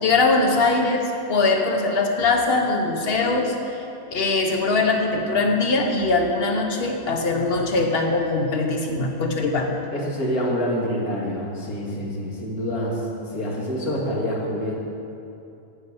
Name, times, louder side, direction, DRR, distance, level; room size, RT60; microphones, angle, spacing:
voice 1, 0.0-3.8 4.1-9.7, left 3 dB, 45° left, 3 dB, 1.3 m, -21 dB
voice 2, 9.9-13.0 13.3-14.8, equal, 75° left, -3 dB, 2.4 m, -26 dB
9.8 x 8.7 x 7.1 m, 2.8 s
omnidirectional pair, 1.6 m